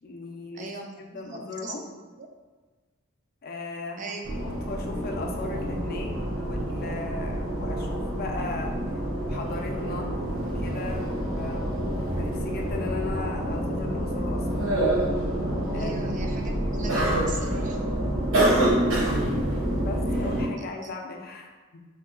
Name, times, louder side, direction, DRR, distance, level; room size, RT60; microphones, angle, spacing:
voice 1, 0.0-0.7 1.1-1.9 3.4-4.1 4.4-8.8 9.3-10.1 10.4-11.1 11.3-14.8 15.7-16.0 19.7-21.9, left 3 dB, 45° left, 2 dB, 0.4 m, -37 dB
voice 2, 0.5-2.3 4.0-4.2 15.7-17.8 20.6-21.0, right 3 dB, 35° right, 2 dB, 0.3 m, -39 dB
sound 1, 4.2-20.5, right 1 dB, 75° right, 0.9 m, -27 dB
2.7 x 2.2 x 3.6 m, 1.3 s
head